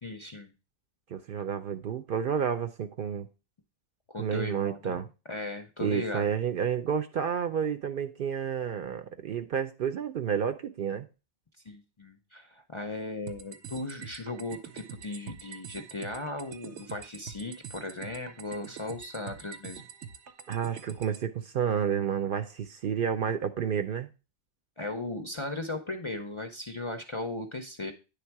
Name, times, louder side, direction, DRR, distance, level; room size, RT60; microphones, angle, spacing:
voice 1, 0.0-0.5 4.1-6.3 11.6-19.8 24.8-27.9, left 2 dB, 35° left, 0.5 m, -37 dB
voice 2, 1.1-3.3 4.2-5.1 5.8-11.1 20.5-24.1, right 8 dB, 60° right, 0.7 m, -30 dB
sound 1, 13.3-21.3, right 8 dB, 80° right, 1.0 m, -45 dB
9.4 x 3.5 x 4.6 m
omnidirectional pair, 1.2 m